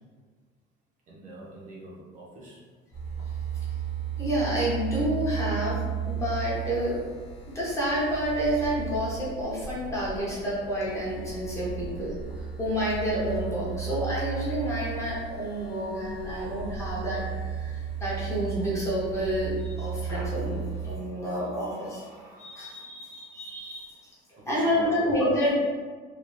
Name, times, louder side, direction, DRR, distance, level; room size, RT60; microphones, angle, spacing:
voice 1, 1.1-2.6 24.4-25.0, right 2 dB, 40° right, -4 dB, 0.5 m, -44 dB
sound 1, 2.9-21.0, right 7 dB, 65° left, 0.9 m, -35 dB
voice 2, 4.2-7.0 7.5-12.2 12.6-20.6 20.8-24.0 24.5-25.5, equal, 15° left, -6 dB, 0.6 m, -29 dB
3.2 x 2.3 x 2.5 m, 1.5 s
cardioid pair, 165°, 21 cm